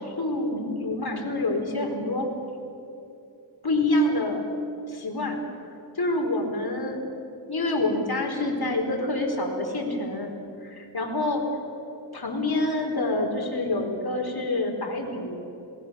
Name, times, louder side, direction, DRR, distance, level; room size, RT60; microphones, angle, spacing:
voice 1, 0.0-2.3 3.6-4.4 4.9-5.4 5.9-7.0 7.5-10.3 10.6-11.4 12.1-15.4, left 2 dB, 55° left, 2 dB, 4.6 m, -27 dB
27.5 x 20.0 x 7.1 m, 2.7 s
wide cardioid pair, 70°, 46 cm